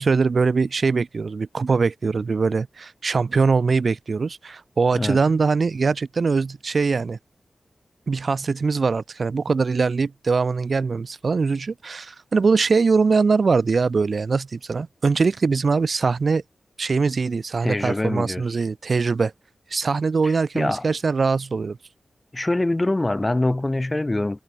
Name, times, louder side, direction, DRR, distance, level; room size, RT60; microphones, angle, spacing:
voice 1, 0.0-7.2 8.1-16.4 16.8-19.3 19.7-21.8, right 4 dB, 60° right, 0.4 m, -22 dB
voice 2, 17.6-18.4 20.2-20.8 22.3-24.4, left 2 dB, 25° left, 1.3 m, -24 dB
cardioid pair, 65°, 0 cm